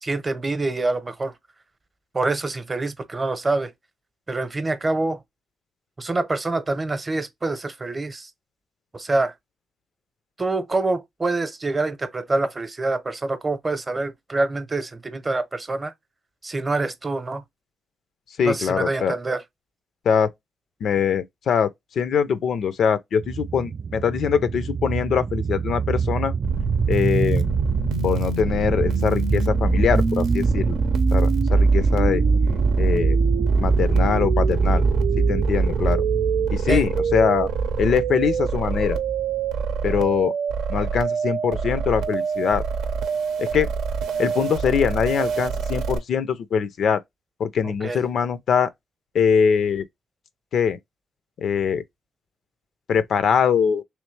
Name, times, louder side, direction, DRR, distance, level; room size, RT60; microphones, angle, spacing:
voice 1, 0.0-1.3 2.1-3.7 4.3-5.2 6.0-8.3 8.9-9.3 10.4-15.9 16.4-17.4 18.4-19.4 36.7-36.8 47.8-48.0, right 2 dB, 25° right, 0.7 m, -26 dB
voice 2, 18.4-19.1 20.1-20.3 20.8-21.7 22.0-26.3 26.9-27.5 28.0-30.8 31.1-32.2 32.8-33.2 33.6-34.8 35.2-36.0 36.5-37.5 37.8-39.0 39.8-40.3 40.7-42.6 43.4-43.7 44.2-47.0 47.4-48.7 49.1-49.9 50.5-50.8 51.4-51.8 52.9-53.8, left 7 dB, 70° left, 0.4 m, -22 dB
sound 1, 23.2-40.2, right 4 dB, 45° right, 0.3 m, -23 dB
sound 2, 26.4-46.0, right 6 dB, 90° right, 0.7 m, -27 dB
3.2 x 3.1 x 3.1 m
cardioid pair, 85°, 0 cm